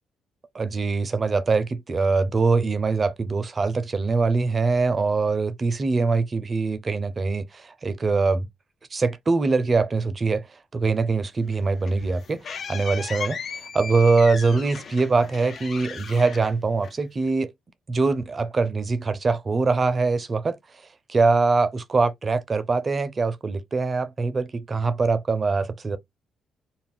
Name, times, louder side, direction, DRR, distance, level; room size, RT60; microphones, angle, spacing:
voice 1, 0.5-8.5 8.9-10.5 10.7-17.5 17.9-20.6 21.1-26.0, right 4 dB, 35° right, 0.5 m, -23 dB
sound 1, 11.5-17.3, left 6 dB, 50° left, 0.4 m, -36 dB
2.4 x 2.1 x 3.4 m
cardioid pair, 90°, 0 cm